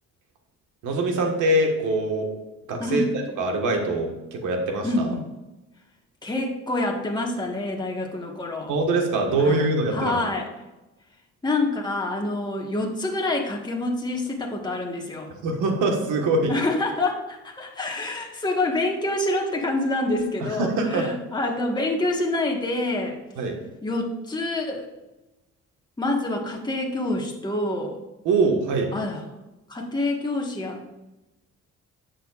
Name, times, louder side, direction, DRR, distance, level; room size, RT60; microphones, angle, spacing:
voice 1, 0.8-2.3 2.7-5.1 8.7-10.2 15.4-16.5 20.4-21.1 23.4-23.5 28.2-28.9, right 2 dB, 90° right, 3 dB, 1.6 m, -23 dB
voice 2, 4.8-5.2 6.2-8.7 9.4-9.7 9.9-10.5 11.4-15.3 16.5-23.2 23.8-24.9 26.0-28.0 28.9-29.2 29.7-30.8, left 2 dB, 15° left, -1 dB, 1.5 m, -27 dB
11.0 x 7.5 x 2.5 m, 1.0 s
cardioid pair, 90°, 30 cm